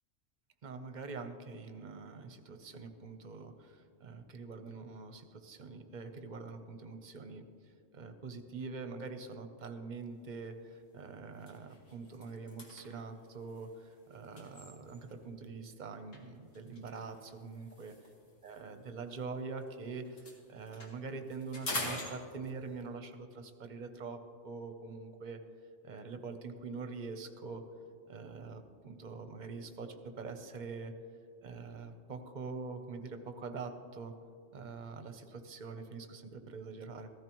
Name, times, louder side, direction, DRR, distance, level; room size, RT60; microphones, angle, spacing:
voice 1, 0.6-7.4 7.9-17.9 18.4-25.4 25.8-27.7 28.1-30.9 31.4-34.1 34.5-37.1, right 4 dB, 45° right, 7 dB, 0.8 m, -44 dB
sound 1, 10.2-10.4 10.8-11.0 11.3-15.3 16.1-19.7 20.0-22.8, left 2 dB, 75° left, 2.1 m, -45 dB
14.5 x 14.0 x 3.0 m, 2.4 s
omnidirectional pair, 1.3 m